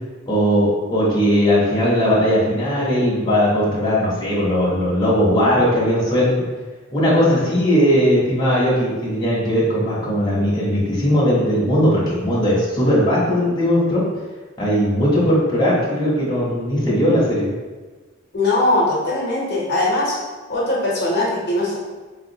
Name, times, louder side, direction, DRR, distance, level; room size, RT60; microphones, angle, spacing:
voice 1, 0.3-6.3 6.9-14.0 14.6-17.5, equal, 20° left, -8 dB, 0.8 m, -18 dB
voice 2, 18.3-20.2 20.5-21.8, left 2 dB, 50° left, -5 dB, 0.7 m, -20 dB
3.5 x 2.4 x 2.7 m, 1.3 s
head